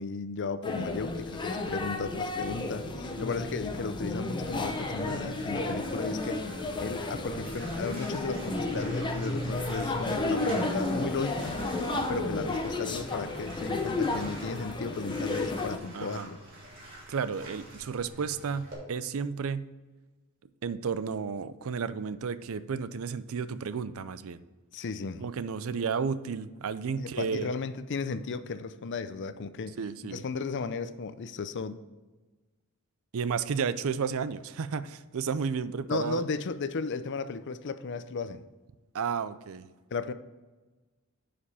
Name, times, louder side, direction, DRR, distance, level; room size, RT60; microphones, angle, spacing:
voice 1, 0.0-11.6 12.1-16.4 24.7-25.3 27.0-29.8 30.0-31.8 35.9-38.4 39.9-40.1, left 4 dB, 55° left, 0.5 m, -35 dB
sound 1, 0.6-15.8, left 2 dB, 20° left, 0.8 m, -32 dB
Bathtub (filling or washing), 4.4-18.8, right 1 dB, 40° right, 2.7 m, -47 dB
voice 2, 11.9-12.3 15.9-16.3 17.1-19.7 20.6-24.4 25.2-27.5 29.8-30.2 33.1-36.2 38.9-39.7, right 6 dB, 65° right, 0.4 m, -32 dB
9.9 x 5.1 x 4.2 m
head